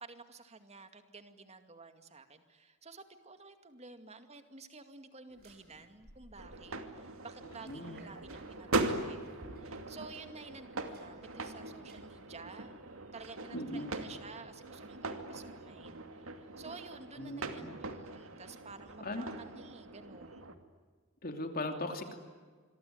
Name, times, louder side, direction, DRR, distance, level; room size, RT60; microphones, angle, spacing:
voice 1, 0.0-12.8 13.1-20.5, right 3 dB, 30° right, 8 dB, 2.3 m, -52 dB
sound 1, 5.3-13.9, right 1 dB, 50° right, 6.4 m, -59 dB
sound 2, 6.4-20.5, right 2 dB, 75° right, 2.5 m, -41 dB
voice 2, 7.6-8.0 13.5-13.9 17.2-17.8 19.0-19.3 21.2-22.1, left 2 dB, 45° left, 5 dB, 2.9 m, -39 dB
27.5 x 23.0 x 9.4 m, 1.5 s
head